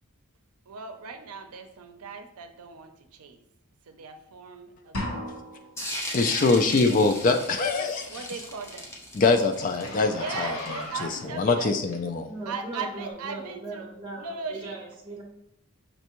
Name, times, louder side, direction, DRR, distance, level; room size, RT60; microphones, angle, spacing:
voice 1, 0.7-3.4 3.8-5.3 6.2-6.6 8.1-9.0 9.4-9.5 10.1-11.8 12.5-13.8 14.2-14.8, right 4 dB, 85° right, 6 dB, 0.5 m, -38 dB
sound 1, 4.9-5.9, left 1 dB, 80° left, 1.0 m, -34 dB
sound 2, 5.8-11.1, equal, 10° left, 0.7 m, -37 dB
voice 2, 6.1-8.2 9.1-10.5 11.3-12.3, left 3 dB, 35° left, 7 dB, 0.3 m, -23 dB
Zipper (clothing), 8.2-12.4 13.0-13.1, left 2 dB, 60° left, 0.8 m, -40 dB
voice 3, 12.3-15.2, right 2 dB, 20° right, -2 dB, 1.1 m, -38 dB
5.3 x 3.3 x 3.0 m, 0.78 s
head